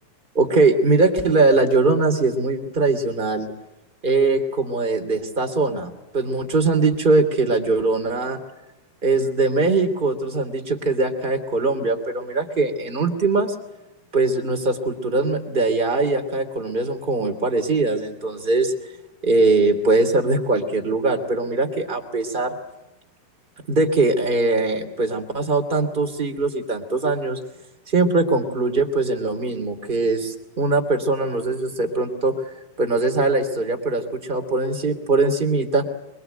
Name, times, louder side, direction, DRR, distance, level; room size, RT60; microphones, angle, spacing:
voice 1, 0.3-3.5 4.0-8.4 9.0-13.5 14.1-18.7 19.2-22.5 23.7-27.4 27.9-32.3 32.8-35.8, right 3 dB, 15° right, 5 dB, 2.1 m, -21 dB
24.5 x 23.5 x 9.1 m, 0.98 s
omnidirectional pair, 5.0 m